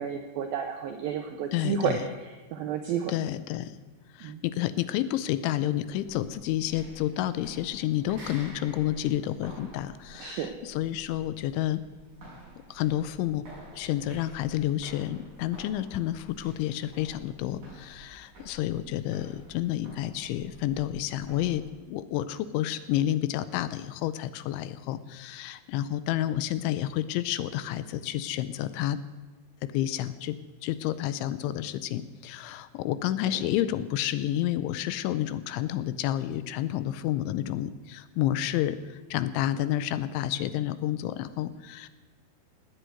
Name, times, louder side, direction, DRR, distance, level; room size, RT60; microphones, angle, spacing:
voice 1, 0.0-3.1 4.2-4.4 10.2-10.5 33.3-33.4, right 7 dB, 80° right, 6 dB, 2.1 m, -31 dB
voice 2, 1.5-2.0 3.1-3.7 4.1-11.8 12.7-13.4 13.7-29.0 29.6-30.4 30.6-41.9, left 13 dB, 80° left, 15 dB, 3.0 m, -30 dB
sound 1, 5.8-21.6, right 2 dB, 40° right, 8.1 m, -50 dB
18.5 x 8.0 x 9.2 m, 1.2 s
omnidirectional pair, 5.5 m